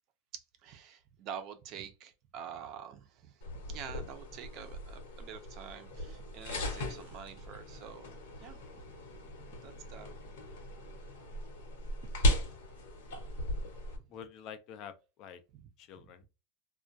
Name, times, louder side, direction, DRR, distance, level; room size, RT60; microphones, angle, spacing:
voice 1, 0.3-3.3 3.7-8.6 9.5-10.1 12.0-12.1 13.4-13.5, right 8 dB, 40° right, 0.4 m, -47 dB
sound 1, 3.4-14.0, equal, 90° left, 1.0 m, -37 dB
voice 2, 14.1-15.4 15.8-16.3, left 8 dB, 40° left, 0.3 m, -47 dB
2.2 x 2.2 x 2.5 m
supercardioid pair, 155°, 0 cm